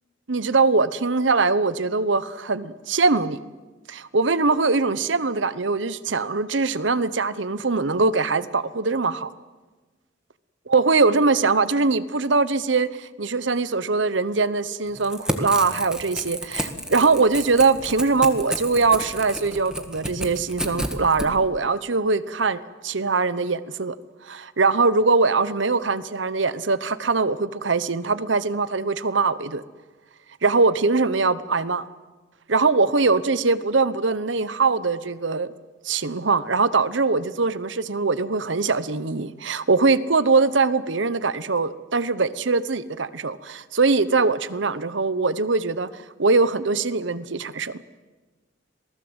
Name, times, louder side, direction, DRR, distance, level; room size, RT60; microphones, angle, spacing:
voice 1, 0.3-3.4 3.9-9.3 10.7-24.0 24.2-29.6 30.4-31.9 32.5-35.5 35.8-47.8, right 4 dB, 75° right, 15 dB, 1.0 m, -22 dB
Crackle / Tearing, 14.9-21.3, right 1 dB, 5° right, 1.7 m, -31 dB
27.0 x 19.0 x 8.1 m, 1.2 s
head